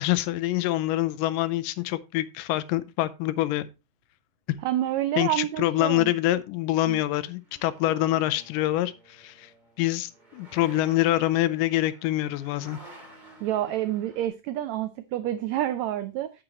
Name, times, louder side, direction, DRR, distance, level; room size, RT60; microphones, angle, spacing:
voice 1, 0.0-3.7 5.2-9.5 9.8-12.8, left 15 dB, 90° left, 2.3 m, -25 dB
sound 1, 3.2-3.3 7.3-14.3, right 1 dB, 15° right, 1.9 m, -51 dB
voice 2, 4.6-6.1 6.9-7.0 13.4-16.3, right 13 dB, 90° right, 1.5 m, -28 dB
8.9 x 8.7 x 2.9 m
omnidirectional pair, 3.7 m